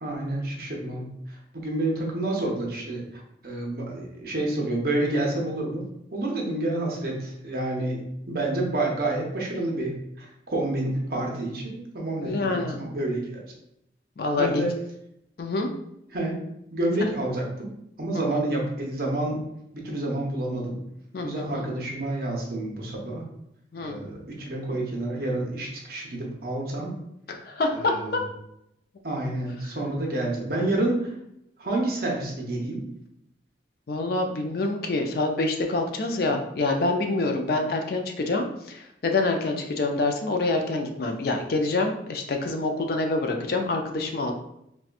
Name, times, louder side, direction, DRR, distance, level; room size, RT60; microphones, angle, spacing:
voice 1, 0.0-5.8 6.1-8.0 8.3-13.4 14.4-14.7 16.1-16.4 16.7-17.7 18.0-19.4 19.7-20.8 21.2-23.2 23.8-27.0 27.7-28.2 29.0-31.1 31.6-32.9, right 2 dB, 55° right, -1 dB, 0.7 m, -29 dB
voice 2, 12.2-12.8 14.2-14.5 15.4-15.7 21.1-21.7 23.7-24.0 27.3-28.2 33.9-44.3, left 2 dB, 55° left, 4 dB, 0.4 m, -26 dB
4.1 x 2.2 x 2.4 m, 0.80 s
head